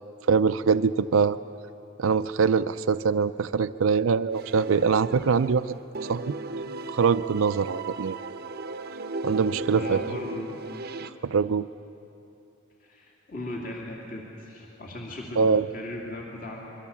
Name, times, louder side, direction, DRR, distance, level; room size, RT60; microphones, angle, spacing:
voice 1, 0.3-1.4 2.0-5.8 6.1-6.3 6.9-8.2 9.2-10.0 11.2-11.7 15.4-15.7, right 5 dB, 75° right, 12 dB, 0.5 m, -23 dB
sound 1, 4.3-5.6 5.9-11.1, right 3 dB, 45° right, 0.7 m, -36 dB
voice 2, 9.7-10.6 12.8-16.7, left 1 dB, 40° left, -2 dB, 2.8 m, -38 dB
26.5 x 22.5 x 7.2 m, 2.9 s
head